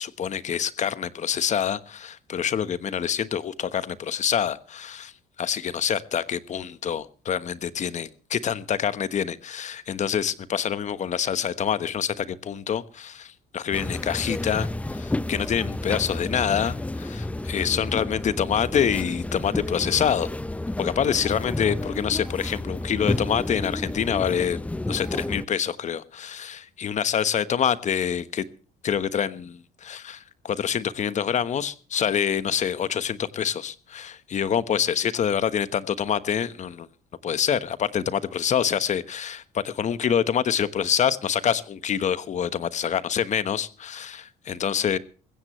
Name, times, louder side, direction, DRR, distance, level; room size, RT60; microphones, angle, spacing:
voice 1, 0.0-5.1 5.4-20.3 20.8-24.6 24.9-28.4 28.8-36.9 37.2-45.0, left 8 dB, 45° left, 15 dB, 1.2 m, -26 dB
sound 1, 13.7-25.5, left 2 dB, 10° left, 0.6 m, -31 dB
21.0 x 15.5 x 3.2 m, 0.38 s
cardioid pair, 110°, 17 cm